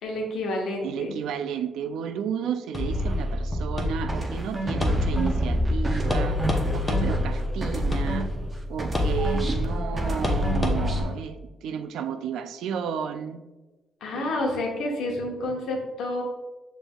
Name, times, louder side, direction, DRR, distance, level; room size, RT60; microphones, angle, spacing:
voice 1, 0.0-1.1 14.0-16.2, left 1 dB, 75° left, 0 dB, 1.0 m, -29 dB
voice 2, 0.8-6.4 6.7-8.3 8.7-13.4 14.1-14.3, right 8 dB, 80° right, 9 dB, 0.3 m, -32 dB
sound 1, 2.7-11.0, left 1 dB, 20° left, 0.8 m, -27 dB
sound 2, 4.1-8.5 8.8-11.1, right 1 dB, 25° right, 0.6 m, -30 dB
6.0 x 3.4 x 2.3 m, 1.1 s
cardioid pair, 90°, 0 cm